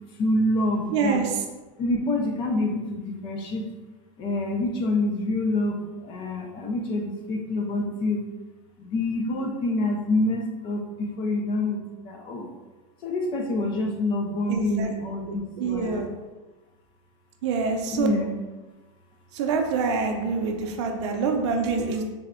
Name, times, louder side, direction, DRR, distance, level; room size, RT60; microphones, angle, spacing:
voice 1, 0.2-1.2 1.8-3.6 4.2-5.8 6.0-8.2 8.8-11.8 12.0-12.5 13.0-16.1 17.9-18.4, left 2 dB, 30° left, 2 dB, 0.4 m, -26 dB
voice 2, 0.9-1.4 14.5-14.9 15.3-16.1 17.4-18.1 19.3-22.0, right 5 dB, 60° right, 4 dB, 0.5 m, -26 dB
3.4 x 2.2 x 3.6 m, 1.2 s
supercardioid pair, 150°, 17 cm